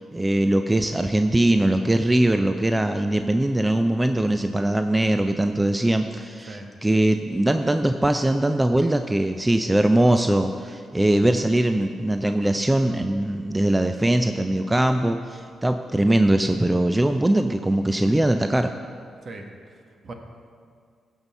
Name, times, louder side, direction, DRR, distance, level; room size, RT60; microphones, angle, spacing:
voice 1, 0.0-18.7, right 1 dB, 15° right, 7 dB, 0.6 m, -21 dB
voice 2, 19.2-20.1, right 2 dB, 55° right, 3 dB, 1.6 m, -40 dB
15.5 x 5.5 x 5.6 m, 2.1 s
hypercardioid pair, 45°, 0 cm